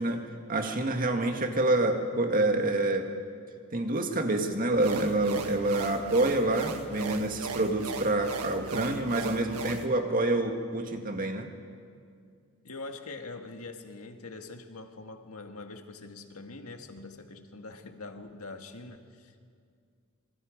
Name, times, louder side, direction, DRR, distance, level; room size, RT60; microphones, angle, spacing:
voice 1, 0.0-3.1 3.7-11.5, right 2 dB, 40° right, 4 dB, 2.0 m, -27 dB
sound 1, 4.7-9.9, right 3 dB, 90° right, 1.6 m, -37 dB
voice 2, 12.6-19.4, left 3 dB, 80° left, 5 dB, 1.8 m, -43 dB
26.5 x 25.0 x 5.3 m, 2.3 s
head